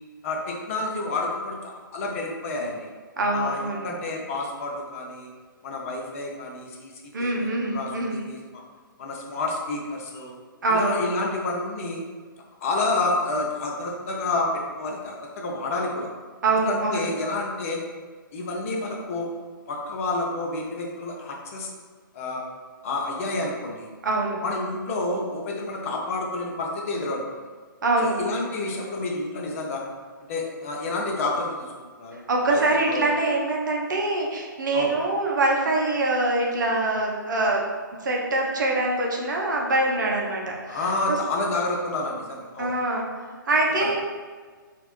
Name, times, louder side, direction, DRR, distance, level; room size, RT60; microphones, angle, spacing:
voice 1, 0.2-2.9 3.3-5.3 5.6-6.9 7.2-8.4 9.0-10.3 10.7-12.0 12.6-16.1 16.6-17.8 18.3-19.3 19.7-21.7 22.1-22.4 22.8-23.9 24.4-27.2 28.0-29.8 30.3-31.7 32.0-32.6 32.9-33.0 34.7-34.9 40.7-42.7 43.8-43.9, left 2 dB, 40° left, -1 dB, 0.5 m, -29 dB
voice 2, 3.2-3.9 7.1-8.2 10.6-11.0 16.4-17.1 24.0-24.4 27.8-28.2 32.3-37.6 38.0-40.9 42.6-43.1 43.5-43.9, right 2 dB, 60° right, -1 dB, 0.6 m, -24 dB
2.9 x 2.5 x 3.0 m, 1.5 s
figure-of-eight pair, 130°, 11 cm